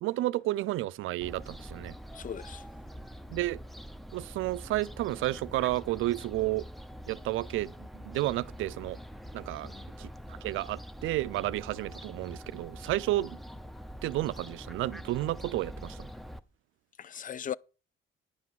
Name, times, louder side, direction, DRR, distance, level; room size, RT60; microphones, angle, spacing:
voice 1, 0.0-2.0 3.3-3.6 4.1-6.7 7.1-9.0 9.3-9.7 10.0-10.1 10.4-13.4 14.0-16.1, right 16 dB, 85° right, 0.5 m, -31 dB
Fowl, 1.2-16.4, equal, ahead, 0.7 m, -45 dB
voice 2, 2.1-2.6 9.6-9.8 17.0-17.6, left 9 dB, 40° left, 0.5 m, -38 dB
10.0 x 6.0 x 7.2 m
cardioid pair, 90°, 20 cm